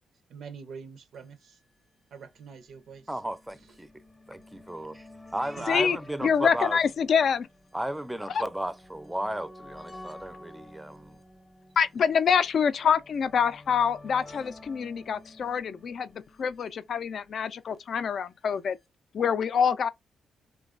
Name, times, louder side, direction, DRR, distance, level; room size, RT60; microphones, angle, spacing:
voice 1, 0.3-1.6 2.1-3.2 5.6-5.7, right 6 dB, 70° right, 0.5 m, -45 dB
sound 1, 1.1-1.2 1.4-1.5 2.4-17.6 18.6-18.7 18.8-18.9, left 1 dB, 25° left, 0.7 m, -51 dB
voice 2, 3.1-3.9 4.3-5.1 5.3-6.8 7.7-11.2, right 1 dB, 10° right, 0.4 m, -34 dB
voice 3, 6.2-7.5 8.3-8.4 11.8-18.8 19.1-19.9, left 7 dB, 60° left, 0.3 m, -26 dB
3.1 x 2.2 x 2.4 m
supercardioid pair, 60°, 0 cm